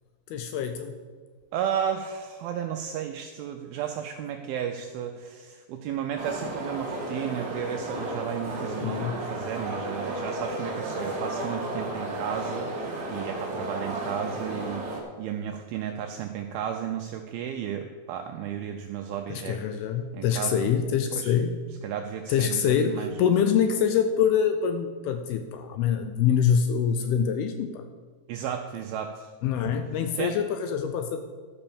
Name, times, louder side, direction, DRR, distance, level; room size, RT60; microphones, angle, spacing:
voice 1, 0.3-0.9 8.8-9.2 19.3-21.5 22.3-27.9 29.4-31.2, left 8 dB, 80° left, 7 dB, 2.3 m, -25 dB
voice 2, 1.5-14.9 15.2-19.6 20.1-20.7 21.1-21.4 21.8-23.1 28.3-29.3 30.2-30.4, right 9 dB, 85° right, 4 dB, 2.1 m, -33 dB
sound 1, 6.2-15.0, right 1 dB, 45° right, 1.3 m, -33 dB
12.0 x 5.5 x 7.0 m, 1.5 s
omnidirectional pair, 4.9 m